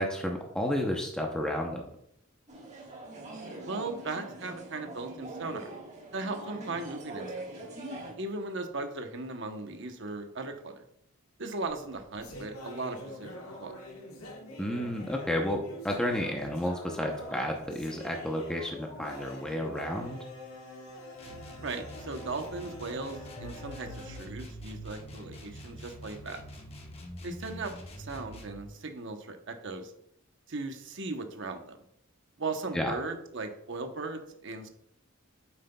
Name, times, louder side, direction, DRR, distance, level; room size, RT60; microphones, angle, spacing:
voice 1, 0.0-1.8 14.6-20.2 32.7-32.9, equal, 5° left, 0 dB, 0.7 m, -31 dB
sound 1, 2.5-8.1, right 1 dB, 35° right, 1.5 m, -43 dB
voice 2, 3.6-5.7 6.1-7.5 8.2-10.8 11.4-13.7 21.6-26.4 27.2-27.7 28.0-29.9 30.5-31.8 32.4-34.7, right 3 dB, 60° right, 5 dB, 0.9 m, -37 dB
sound 2, 11.7-25.1, left 1 dB, 85° left, 1.6 m, -45 dB
sound 3, 21.2-28.7, equal, 30° left, 1.0 m, -45 dB
9.1 x 7.7 x 2.3 m, 0.74 s
head